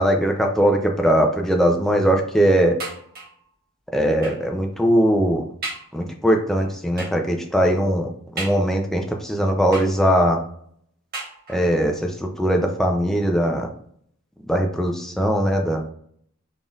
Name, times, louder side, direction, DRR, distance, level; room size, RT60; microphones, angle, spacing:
voice 1, 0.0-2.8 3.9-5.4 5.9-8.1 8.4-10.4 11.5-13.7 14.5-15.8, equal, ahead, 2 dB, 0.4 m, -20 dB
sound 1, 2.8-3.5 4.2-4.5 5.1-5.2 5.6-6.0 7.0-7.3 8.4-9.0 9.7-10.3 11.1-11.8 12.6-12.7 13.0-13.1, right 2 dB, 45° right, 1.4 m, -35 dB
3.8 x 3.7 x 2.4 m, 0.64 s
head